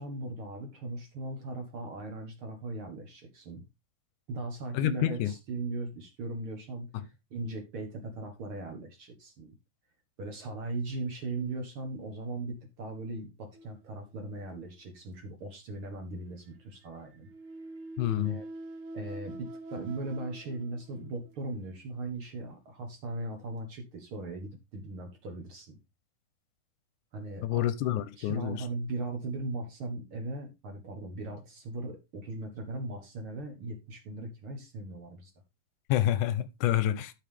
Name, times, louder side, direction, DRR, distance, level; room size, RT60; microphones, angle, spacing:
voice 1, 0.0-3.6 4.3-9.6 10.2-17.3 18.2-18.4 18.9-25.8 27.1-35.3, right 2 dB, 50° right, 1.9 m, -38 dB
voice 2, 4.7-5.3 18.0-18.4 27.4-28.6 35.9-37.1, left 12 dB, 80° left, 2.1 m, -28 dB
sound 1, 13.5-14.5 16.5-21.6 22.3-22.5 23.3-23.4, right 2 dB, 70° right, 2.8 m, -45 dB
12.5 x 5.5 x 3.4 m
omnidirectional pair, 3.6 m